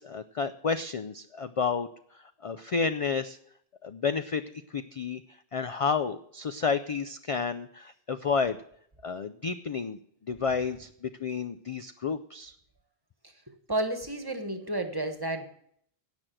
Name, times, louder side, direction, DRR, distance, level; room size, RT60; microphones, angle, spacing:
voice 1, 0.0-1.9 2.4-3.4 3.8-4.4 4.7-5.2 5.5-8.6 9.0-10.0 10.3-12.5, left 5 dB, 45° left, 10 dB, 0.5 m, -30 dB
voice 2, 13.7-15.5, right 1 dB, 20° right, 7 dB, 1.3 m, -31 dB
16.5 x 6.2 x 7.7 m, 0.68 s
omnidirectional pair, 1.0 m